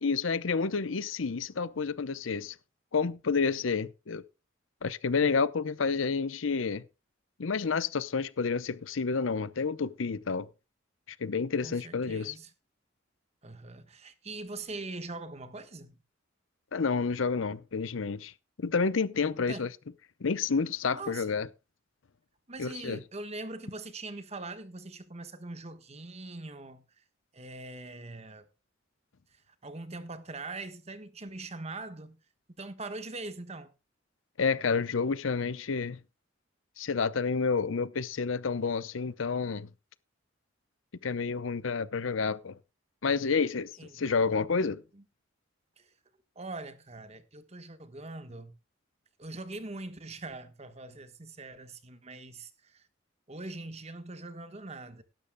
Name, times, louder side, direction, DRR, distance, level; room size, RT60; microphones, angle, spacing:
voice 1, 0.0-2.6 2.9-4.2 4.8-6.8 7.4-10.5 11.1-12.3 16.7-18.3 18.6-19.7 20.2-21.5 22.6-23.0 34.4-36.0 36.8-39.7 41.0-42.6 43.0-44.8, left 5 dB, 85° left, 0.7 m, -29 dB
voice 2, 11.6-12.5 13.4-16.0 19.5-19.7 20.9-21.3 22.5-26.8 27.3-28.5 29.3-32.2 32.6-33.7 43.6-44.2 44.9-45.0 45.8-45.9 46.3-48.5 49.2-52.9 53.3-55.0, right 2 dB, 35° right, 1.3 m, -42 dB
17.0 x 12.0 x 2.2 m
head